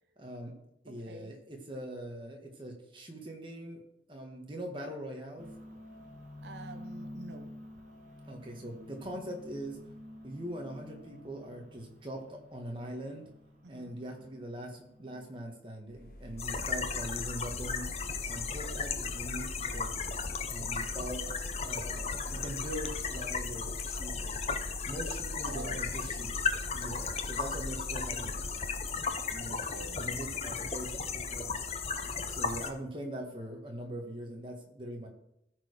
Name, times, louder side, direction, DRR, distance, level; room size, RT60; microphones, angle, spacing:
voice 1, 0.2-0.5 0.8-3.8 4.1-5.5 8.2-9.8 10.2-13.2 13.7-17.9 18.2-19.9 20.5-21.2 21.6-24.3 24.9-26.3 26.7-28.3 29.3-29.6 30.0-31.6 32.3-35.1, right 1 dB, 30° right, 1 dB, 1.6 m, -42 dB
voice 2, 0.9-1.4 6.4-7.5 13.6-14.0 25.4-26.0 29.5-30.1, right 3 dB, 85° right, 7 dB, 0.8 m, -47 dB
sound 1, 5.4-15.6, left 1 dB, 45° right, 1.7 m, -50 dB
sound 2, 15.9-28.9, equal, 50° left, 1.2 m, -43 dB
sound 3, 16.4-32.7, left 5 dB, 35° left, 0.6 m, -35 dB
14.0 x 4.7 x 5.0 m, 0.80 s
head